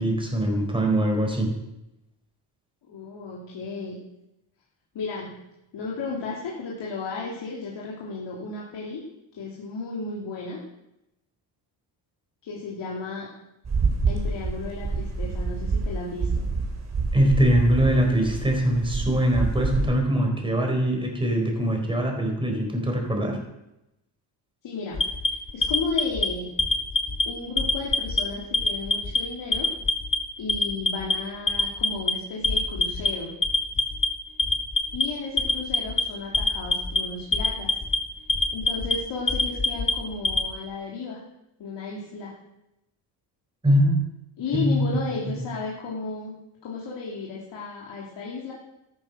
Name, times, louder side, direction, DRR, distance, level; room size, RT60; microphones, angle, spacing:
voice 1, 0.0-1.5 17.1-23.4 43.6-44.0 44.5-44.8, right 1 dB, 10° right, 1 dB, 4.3 m, -22 dB
voice 2, 2.9-4.0 4.9-5.4 5.7-9.0 9.4-10.6 12.4-13.3 14.1-16.5 24.6-26.5 27.3-29.7 30.4-33.3 34.9-37.7 38.5-41.2 41.6-42.4 44.4-46.4 46.6-48.5, left 4 dB, 65° left, -4 dB, 3.3 m, -34 dB
sound 1, 13.6-19.9, right 4 dB, 35° right, 3.1 m, -27 dB
Alarm, 24.9-26.2 26.6-27.2 27.6-28.2 28.5-29.2 29.5-30.2 30.5-31.1 31.5-32.1 32.4-33.1 33.4-34.1 34.4-35.0 35.4-36.0 36.3-37.0 37.3-38.0 38.3-38.9 39.3-40.5, left 3 dB, 25° left, 1.8 m, -23 dB
13.5 x 11.5 x 6.4 m, 0.89 s
cardioid pair, 135°, 46 cm